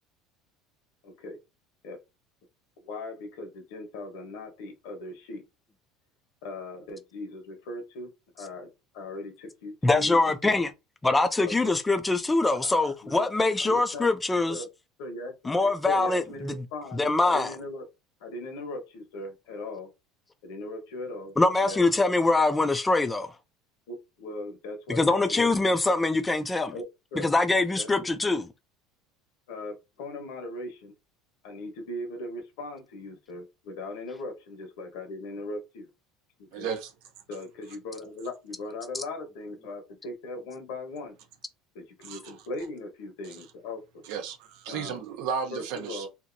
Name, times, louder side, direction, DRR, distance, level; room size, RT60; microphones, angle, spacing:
voice 1, 1.0-1.4 1.8-2.0 2.8-5.4 6.4-8.1 8.3-8.7 8.9-10.5 11.4-11.5 12.8-13.2 13.6-14.1 14.5-14.7 15.0-15.3 15.6-17.8 18.2-19.9 20.4-21.4 21.6-22.0 23.9-25.6 26.7-26.8 27.1-27.3 27.8-27.9 29.5-30.9 31.4-35.9 36.4-36.7 37.3-41.2 41.7-44.0 44.7-45.0 45.5-46.1, left 2 dB, 80° left, 1.2 m, -39 dB
voice 2, 9.8-10.7 11.0-14.6 15.5-16.5 16.9-17.5 21.4-23.3 24.9-26.7 27.2-28.5, left 2 dB, 10° left, 0.3 m, -23 dB
voice 3, 36.5-36.9 42.0-42.4 43.3-43.4 44.0-46.1, right 7 dB, 70° right, 0.7 m, -34 dB
2.8 x 2.6 x 2.6 m
cardioid pair, 160°, 0 cm